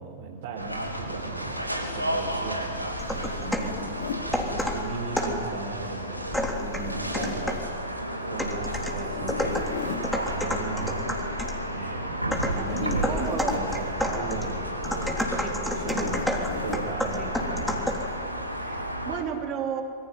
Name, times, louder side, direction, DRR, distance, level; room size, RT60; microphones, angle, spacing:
voice 1, 0.0-7.7 8.3-11.0 11.6-17.9, right 4 dB, 55° right, -2 dB, 4.0 m, -37 dB
sound 1, 0.6-19.2, equal, 90° right, 3.3 m, -33 dB
sound 2, 3.0-3.8 4.3-5.5 6.3-7.7 8.4-11.6 12.3-18.1, left 1 dB, 5° left, 3.4 m, -30 dB
Zipper (clothing), 3.4-4.3 6.2-7.4 9.0-10.1 12.5-13.7 15.7-16.9, left 6 dB, 60° left, 3.3 m, -36 dB
voice 2, 12.8-13.6 15.4-15.5 17.2-17.3 18.6-19.8, right 8 dB, 35° right, 3 dB, 3.7 m, -32 dB
27.0 x 23.5 x 9.3 m, 2.5 s
figure-of-eight pair, 90°, 0 cm